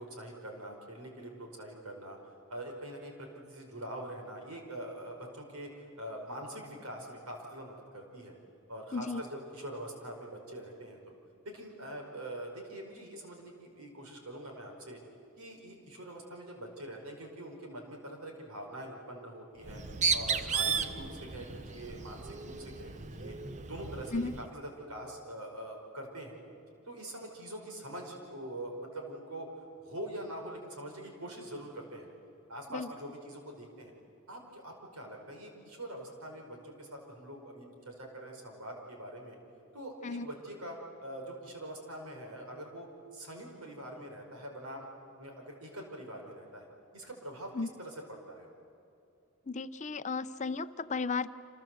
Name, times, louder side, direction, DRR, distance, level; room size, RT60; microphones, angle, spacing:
voice 1, 0.0-2.2 2.5-8.3 8.7-11.1 11.5-15.0 15.4-19.8 20.1-23.4 23.7-26.4 26.9-32.1 32.5-33.9 34.3-39.4 39.7-44.9 45.2-46.7 46.9-47.5 47.8-48.5, right 1 dB, 85° right, 2 dB, 5.3 m, -44 dB
Bird, 19.6-24.5, right 5 dB, 35° right, 0.9 m, -34 dB
voice 2, 49.5-51.3, left 4 dB, 35° left, 12 dB, 0.6 m, -34 dB
29.0 x 26.0 x 7.8 m, 2.7 s
head